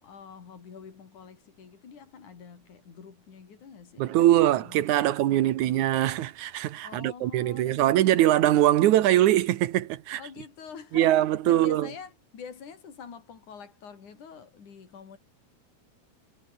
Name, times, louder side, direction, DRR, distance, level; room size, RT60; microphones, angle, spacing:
voice 1, 0.0-5.8 6.8-8.3 10.1-11.2 11.4-15.2, left 6 dB, 80° left, 5.1 m, -46 dB
voice 2, 4.0-10.2 10.9-11.9, right 13 dB, 80° right, 2.4 m, -22 dB
omnidirectional pair, 3.4 m